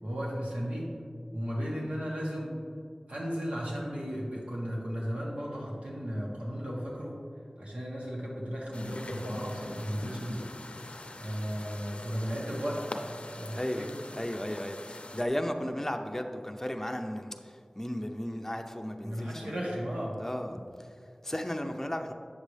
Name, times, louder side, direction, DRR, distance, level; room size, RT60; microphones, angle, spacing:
voice 1, 0.0-0.9 1.3-2.5 3.1-7.2 7.6-10.4 11.2-12.8 13.4-13.9 19.0-20.2, equal, 85° right, -4 dB, 1.6 m, -35 dB
sound 1, 8.7-15.2, left 1 dB, 75° left, 0.5 m, -42 dB
voice 2, 13.5-13.9 14.2-19.5 20.2-22.1, equal, 15° left, 4 dB, 0.6 m, -35 dB
8.1 x 6.5 x 3.3 m, 2.2 s
wide cardioid pair, 45°, 2 cm